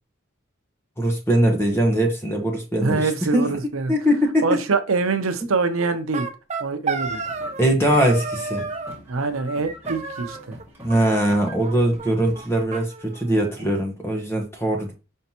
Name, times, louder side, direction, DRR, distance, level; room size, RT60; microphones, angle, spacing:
voice 1, 1.0-3.5 3.9-4.4 7.6-8.6 10.8-14.9, right 1 dB, 10° left, 1.0 m, -21 dB
voice 2, 2.8-3.9 4.4-6.3 6.6-7.2 9.1-10.6, right 4 dB, 85° right, 0.7 m, -24 dB
sound 1, 5.8-7.7 7.9-8.9 9.9-10.6 10.9-11.7 12.0-12.1 12.3-12.4 12.7-13.8, right 4 dB, 35° right, 0.5 m, -32 dB
sound 2, 7.0-12.6, left 1 dB, 10° right, 1.9 m, -41 dB
5.5 x 3.3 x 2.9 m
head